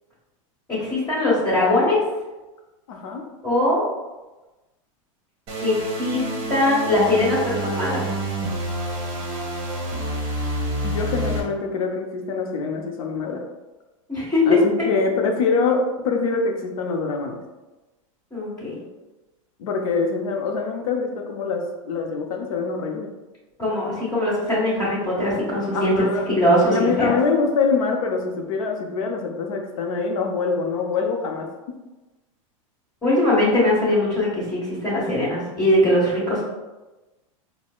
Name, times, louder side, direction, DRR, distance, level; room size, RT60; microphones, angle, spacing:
voice 1, 0.7-2.0 3.4-3.8 5.6-8.0 14.1-14.9 18.3-18.7 23.6-27.2 33.0-36.4, left 1 dB, 15° left, -11 dB, 1.4 m, -21 dB
voice 2, 2.9-3.2 10.8-13.4 14.5-17.4 19.6-23.1 25.7-26.3 26.7-31.5, left 4 dB, 80° left, 2 dB, 0.6 m, -24 dB
sound 1, 5.5-11.4, right 1 dB, 30° right, 1.1 m, -28 dB
4.3 x 2.1 x 2.3 m, 1.1 s
supercardioid pair, 130°, 18 cm